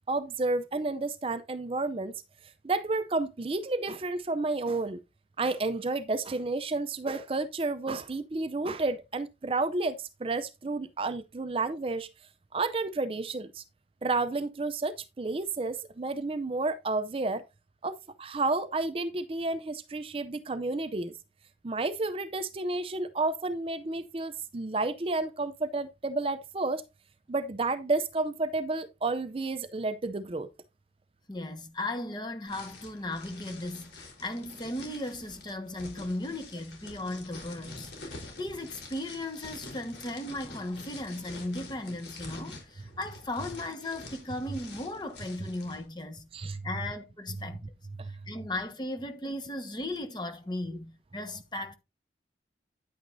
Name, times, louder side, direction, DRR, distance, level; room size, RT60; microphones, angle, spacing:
voice 1, 0.1-2.1 2.6-5.0 5.4-12.1 12.5-13.6 14.0-17.4 17.8-21.1 21.6-26.8 27.3-30.5 46.3-46.7 47.4-47.5 48.0-48.2, right 3 dB, 30° right, 0.5 m, -31 dB
voice 2, 31.3-47.6 48.3-51.8, left 1 dB, 25° left, 1.2 m, -36 dB
sound 1, 32.5-45.8, left 2 dB, 75° left, 3.8 m, -47 dB
9.5 x 9.1 x 2.6 m
head